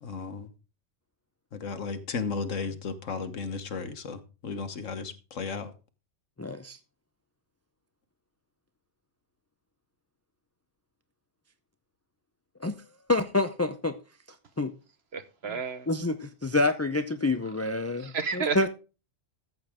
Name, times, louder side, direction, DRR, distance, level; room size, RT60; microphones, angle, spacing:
voice 1, 0.0-0.5 1.5-5.7, left 5 dB, 90° left, 1.5 m, -34 dB
voice 2, 6.4-6.8 12.6-12.8 13.1-14.0 14.6-14.7 15.5-15.6 15.9-18.7, left 2 dB, 25° left, 0.3 m, -27 dB
voice 3, 15.1-15.9 18.0-18.7, right 5 dB, 60° right, 1.3 m, -31 dB
14.0 x 7.7 x 3.6 m
omnidirectional pair, 1.3 m